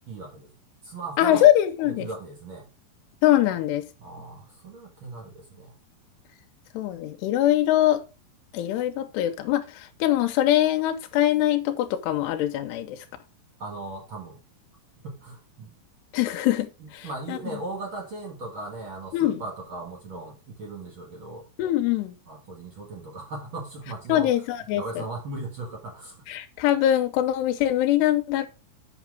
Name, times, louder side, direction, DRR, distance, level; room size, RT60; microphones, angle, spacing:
voice 1, 0.1-0.5 0.8-1.5 2.0-2.7 4.0-5.8 13.6-14.4 15.0-15.7 16.8-21.5 22.3-24.3 24.7-26.2, right 2 dB, 60° right, 1.3 m, -38 dB
voice 2, 1.2-2.1 3.2-3.9 6.7-8.0 8.5-13.1 16.1-17.4 19.1-19.4 21.6-22.2 24.1-25.1 26.3-28.5, left 13 dB, 90° left, 2.9 m, -23 dB
8.1 x 6.2 x 4.7 m
omnidirectional pair, 4.8 m